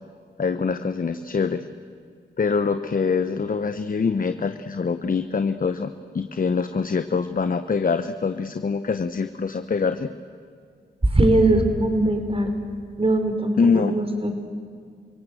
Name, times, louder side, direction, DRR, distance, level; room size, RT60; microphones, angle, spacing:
voice 1, 0.4-1.6 2.4-10.1 13.6-13.9, left 5 dB, 45° left, 10 dB, 0.9 m, -24 dB
voice 2, 11.1-12.5 13.0-14.3, right 1 dB, 30° right, 5 dB, 4.0 m, -20 dB
28.5 x 17.5 x 7.8 m, 2.1 s
cardioid pair, 50°, 20 cm